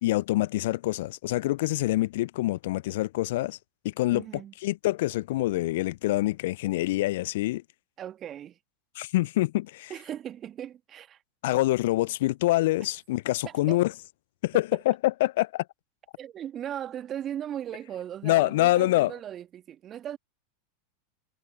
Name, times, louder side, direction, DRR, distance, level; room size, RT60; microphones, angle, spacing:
voice 1, 0.0-3.6 3.8-4.2 4.6-7.6 9.0-9.9 11.4-13.9 14.4-15.6 18.2-19.1, left 17 dB, 65° left, 0.3 m, -25 dB
voice 2, 4.1-4.5 8.0-8.6 9.9-11.2 13.4-13.8 16.2-20.2, right 10 dB, 35° right, 1.7 m, -38 dB
hypercardioid pair, 90°, 0 cm